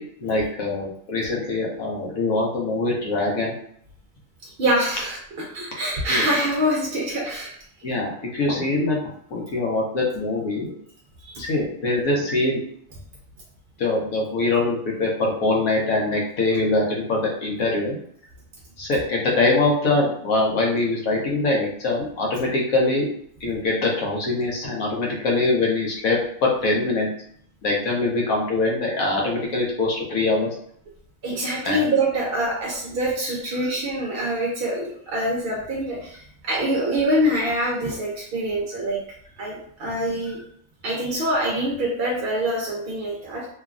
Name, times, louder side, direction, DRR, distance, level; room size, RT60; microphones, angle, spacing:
voice 1, 0.0-3.5 6.1-6.2 7.8-9.0 9.3-10.7 11.4-12.6 13.8-18.0 18.8-23.1 23.4-27.1 27.6-30.5 31.6-31.8, left 2 dB, 85° left, -2 dB, 1.2 m, -23 dB
voice 2, 4.4-5.2 5.5-7.6 11.3-11.4 31.2-39.0 39.4-40.4 40.8-43.5, right 1 dB, 55° right, -3 dB, 0.7 m, -25 dB
3.1 x 2.2 x 2.4 m, 0.64 s
omnidirectional pair, 1.4 m